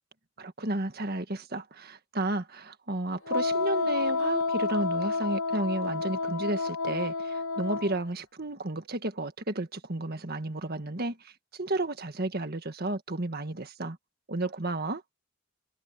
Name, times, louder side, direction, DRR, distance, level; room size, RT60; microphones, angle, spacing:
voice 1, 0.4-14.0 14.3-15.0, right 2 dB, 45° right, 1.7 m, -32 dB
Wind instrument woodwind instrument, 3.3-8.0, left 3 dB, 85° left, 1.0 m, -29 dB
head